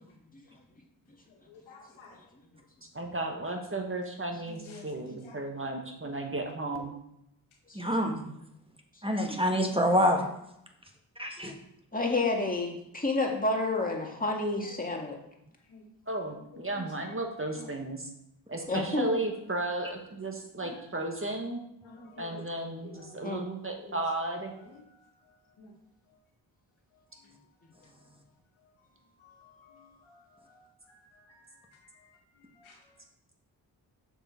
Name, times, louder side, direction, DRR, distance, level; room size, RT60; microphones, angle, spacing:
voice 1, 1.3-2.2 4.5-5.4 9.7-10.3 14.6-14.9 15.7-15.8 16.5-17.1 17.5-17.7 20.6-20.8 21.8-22.4 22.8-23.1 23.7-23.9 24.5-25.7 26.1-26.2 26.9-27.5 27.7-28.1 28.6-28.7 29.2-33.0, left 3 dB, 90° left, 0 dB, 1.7 m, -52 dB
voice 2, 2.9-6.9 16.1-18.1 18.5-21.6 22.2-24.5, right 2 dB, 25° right, 2 dB, 1.7 m, -34 dB
voice 3, 7.7-8.2 9.0-10.2 11.2-11.5, equal, 10° right, 3 dB, 1.4 m, -26 dB
voice 4, 11.9-15.2 18.7-19.1 23.2-23.4, left 2 dB, 20° left, 0 dB, 2.0 m, -29 dB
6.6 x 6.1 x 4.5 m, 0.78 s
cardioid pair, 45°, 46 cm